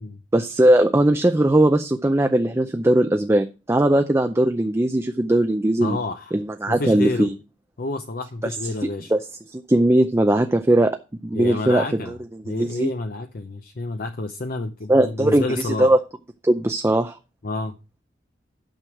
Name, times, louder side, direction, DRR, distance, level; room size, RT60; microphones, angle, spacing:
voice 1, 0.3-6.0 6.3-7.3 9.1-9.2 9.5-11.0 11.2-12.2 12.6-12.9 14.9-16.0 16.4-17.2, right 1 dB, 15° right, 0.5 m, -19 dB
voice 2, 5.8-6.3 6.7-7.3 7.8-9.1 11.3-12.2 12.4-15.9 17.4-17.7, left 2 dB, 50° left, 0.6 m, -29 dB
9.1 x 6.2 x 4.7 m
head